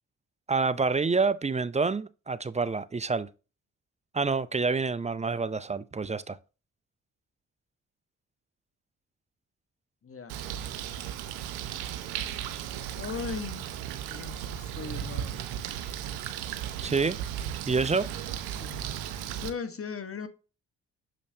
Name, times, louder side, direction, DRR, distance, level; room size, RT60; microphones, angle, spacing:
voice 1, 0.5-3.3 4.1-6.4 16.8-17.2 17.7-18.1, right 4 dB, 20° right, 0.6 m, -27 dB
voice 2, 10.0-10.4 13.0-13.7 14.1-15.4 18.6-18.8 19.4-20.3, left 6 dB, 35° left, 1.4 m, -38 dB
Bird, 10.3-19.5, right 10 dB, 85° right, 0.8 m, -36 dB
6.7 x 5.2 x 2.8 m
hypercardioid pair, 45°, 37 cm